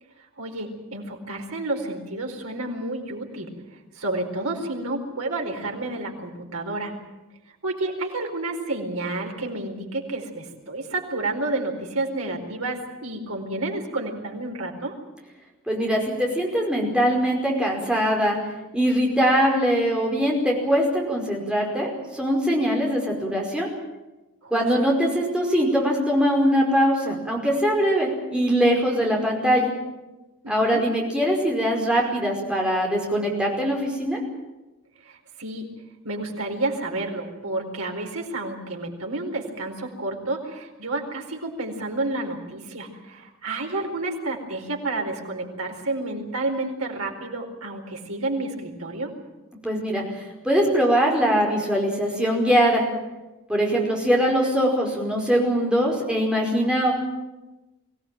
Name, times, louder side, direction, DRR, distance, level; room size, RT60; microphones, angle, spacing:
voice 1, 0.4-3.5 3.9-6.9 7.6-14.9 24.4-24.7 30.4-30.8 35.0-35.7 36.0-49.1, right 2 dB, 85° right, 2 dB, 4.5 m, -30 dB
voice 2, 15.7-18.4 18.7-23.7 24.5-29.7 30.5-34.2 49.6-50.0 50.4-52.8 53.5-56.9, equal, 5° right, -1 dB, 5.1 m, -22 dB
23.5 x 17.0 x 9.1 m, 1.1 s
head